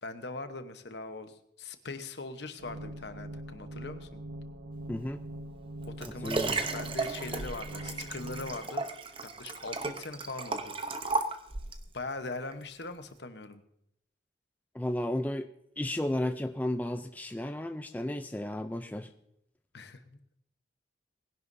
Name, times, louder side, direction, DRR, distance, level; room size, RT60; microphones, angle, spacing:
voice 1, 0.0-4.3 6.0-6.4 6.7-8.9 9.4-10.8 11.9-13.6 19.7-20.4, left 3 dB, 60° left, 9 dB, 1.0 m, -41 dB
sound 1, 2.6-8.6, right 1 dB, 75° right, 1.1 m, -43 dB
voice 2, 4.9-5.2 6.0-6.6 14.7-15.5 15.8-19.1, left 1 dB, 10° left, 8 dB, 0.4 m, -33 dB
Liquid, 5.6-11.9 12.5-12.6, right 3 dB, 30° right, 0.8 m, -34 dB
20.5 x 10.5 x 2.7 m, 0.78 s
head